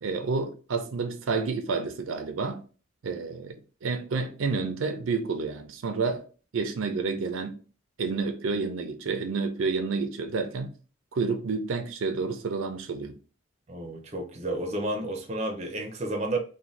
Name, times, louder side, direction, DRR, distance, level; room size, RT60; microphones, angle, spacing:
voice 1, 0.0-2.6 3.0-6.2 6.5-7.6 8.0-10.7 11.1-13.2, right 4 dB, 85° right, 0.5 m, -29 dB
voice 2, 13.7-16.4, right 1 dB, 35° right, 0.5 m, -31 dB
2.6 x 2.1 x 3.1 m
head